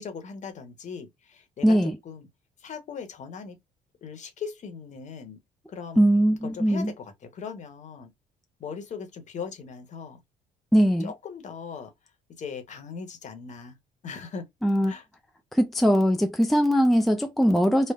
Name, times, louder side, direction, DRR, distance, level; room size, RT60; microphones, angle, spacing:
voice 1, 0.0-2.3 2.6-3.6 4.0-5.4 5.7-6.0 6.4-8.1 8.6-10.2 11.0-11.9 12.4-13.8 14.0-14.5 14.8-15.0, left 6 dB, 45° left, 1.0 m, -39 dB
voice 2, 1.6-1.9 6.0-6.9 10.7-11.1 14.6-14.9 15.5-17.9, equal, ahead, 0.4 m, -21 dB
3.2 x 2.0 x 2.3 m
cardioid pair, 110°, 17 cm